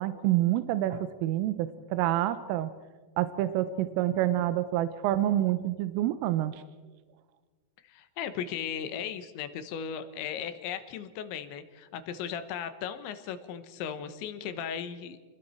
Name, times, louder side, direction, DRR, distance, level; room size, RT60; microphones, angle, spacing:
voice 1, 0.0-2.7 3.2-6.6, right 13 dB, 85° right, 11 dB, 3.3 m, -27 dB
voice 2, 7.8-15.2, left 8 dB, 75° left, 10 dB, 3.3 m, -37 dB
29.0 x 21.5 x 4.4 m, 1.4 s
omnidirectional pair, 5.7 m